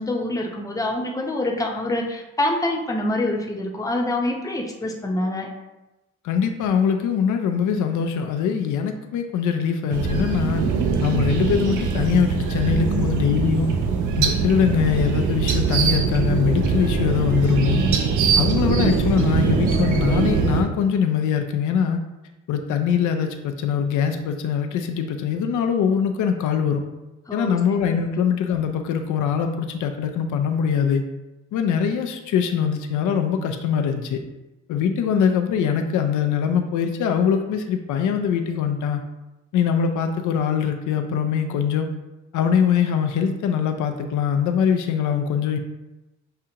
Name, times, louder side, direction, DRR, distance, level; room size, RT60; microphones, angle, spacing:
voice 1, 0.0-5.5 12.7-13.4 27.3-27.6, left 1 dB, 10° left, 0 dB, 0.7 m, -26 dB
voice 2, 6.2-10.6 11.0-13.7 14.2-17.8 18.4-22.0 22.5-26.8 27.3-31.0 31.5-34.2 34.7-39.0 39.5-41.9 42.3-45.6, left 7 dB, 75° left, 6 dB, 0.5 m, -22 dB
sound 1, 9.9-20.6, right 5 dB, 80° right, 0.7 m, -22 dB
6.6 x 2.4 x 2.8 m, 1.0 s
cardioid pair, 90°, 30 cm